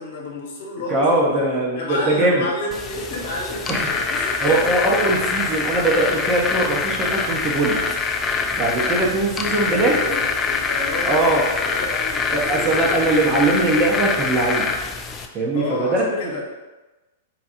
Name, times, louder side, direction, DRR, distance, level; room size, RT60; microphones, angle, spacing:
voice 1, 0.0-1.5 1.7-4.7 5.5-5.7 9.4-12.9 15.5-16.4, left 2 dB, 60° left, -2 dB, 1.1 m, -30 dB
voice 2, 0.9-2.4 3.7-3.9 4.4-7.8 8.5-9.9 11.0-11.4 12.3-14.7 15.3-16.0, right 2 dB, 30° right, -2 dB, 1.0 m, -20 dB
sound 1, 2.7-15.3, left 4 dB, 20° left, 0.4 m, -24 dB
4.1 x 2.4 x 4.3 m, 1.1 s
hypercardioid pair, 110°, 0 cm